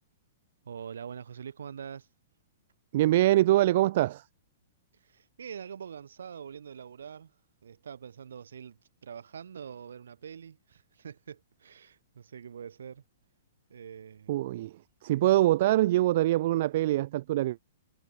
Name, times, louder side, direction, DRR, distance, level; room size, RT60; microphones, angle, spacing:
voice 1, 0.6-2.1 5.0-7.3 7.6-13.0 13.7-14.3, right 7 dB, 65° right, 3.6 m, -44 dB
voice 2, 2.9-4.2 14.3-14.7 15.0-17.6, right 15 dB, 50° right, 0.6 m, -24 dB
figure-of-eight pair, 110°, 0 cm